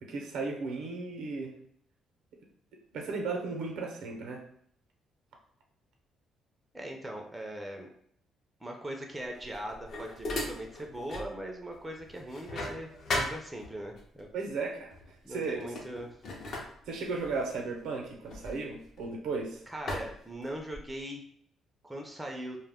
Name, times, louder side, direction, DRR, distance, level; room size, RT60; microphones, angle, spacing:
voice 1, 0.0-1.5 2.9-4.4 14.3-14.9 15.3-15.6 16.9-19.6, right 4 dB, 80° right, 2 dB, 0.6 m, -35 dB
voice 2, 6.7-7.9 8.6-14.3 15.2-16.2 19.7-21.2 21.8-22.6, right 1 dB, 10° right, 1 dB, 0.4 m, -40 dB
sound 1, 9.3-11.4 11.7-14.0 14.9-15.1 15.5-19.3 19.9-21.0, left 2 dB, 55° left, 0.6 m, -38 dB
2.2 x 2.0 x 3.4 m, 0.67 s
cardioid pair, 120°, 0 cm